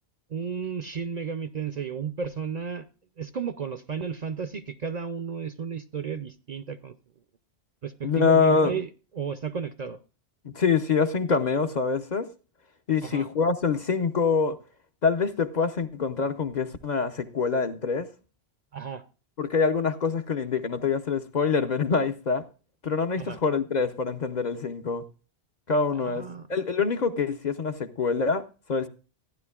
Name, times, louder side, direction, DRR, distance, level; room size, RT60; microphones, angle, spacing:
voice 1, 0.3-2.8 3.2-6.9 7.8-8.9 9.1-10.0 13.0-13.3 18.7-19.0 23.2-23.4 25.9-26.5, right 6 dB, 50° right, 0.6 m, -33 dB
voice 2, 8.0-8.8 10.4-12.3 12.9-14.6 15.0-18.1 19.4-22.5 22.8-25.0 25.7-26.2 26.5-28.4 28.7-28.9, left 5 dB, 50° left, 0.8 m, -25 dB
15.0 x 10.5 x 2.3 m
omnidirectional pair, 1.1 m